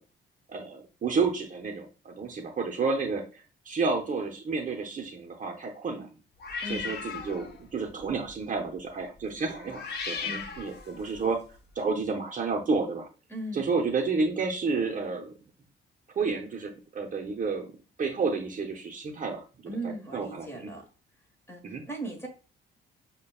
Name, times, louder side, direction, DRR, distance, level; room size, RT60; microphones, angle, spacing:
voice 1, 0.5-6.1 6.7-11.4 11.8-13.1 13.5-15.3 16.2-17.7 18.0-19.4 19.8-20.7 21.6-21.8, right 4 dB, 40° right, 2 dB, 0.7 m, -30 dB
sound 1, 6.4-7.6 8.0-8.3 9.5-11.3, left 5 dB, 55° left, 0.9 m, -37 dB
voice 2, 6.6-7.0 10.2-10.5 13.3-13.7 19.7-20.8 21.5-22.3, right 1 dB, 10° left, 1 dB, 1.4 m, -38 dB
6.5 x 2.2 x 2.3 m, 0.35 s
cardioid pair, 90°, 20 cm